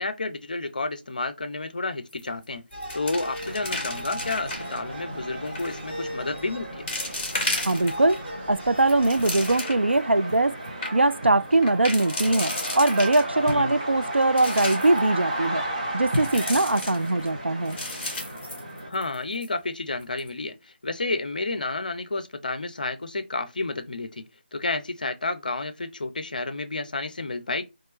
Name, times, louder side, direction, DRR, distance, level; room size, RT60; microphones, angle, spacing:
voice 1, 0.0-2.6 2.9-6.9 13.5-13.7 18.9-24.2 24.5-27.6, left 3 dB, 50° left, 0.6 m, -31 dB
sound 1, 2.1-2.4 2.7-4.8 5.4-5.8 6.4-6.5 6.9-8.2 8.7-9.9 10.3-10.4 10.6-10.9 11.6-13.5 14.0-15.0 16.1-17.3 17.7-19.2 19.4-19.5 20.0-20.3, left 2 dB, 15° left, 1.4 m, -33 dB
sound 2, 2.7-9.6, equal, 10° right, 1.4 m, -40 dB
sound 3, 3.4-18.9, right 1 dB, 35° right, 1.1 m, -34 dB
voice 2, 7.6-8.2 8.5-10.5 10.9-15.6 15.9-17.8, right 2 dB, 80° right, 0.4 m, -22 dB
4.4 x 2.5 x 3.0 m
figure-of-eight pair, 160°, 6 cm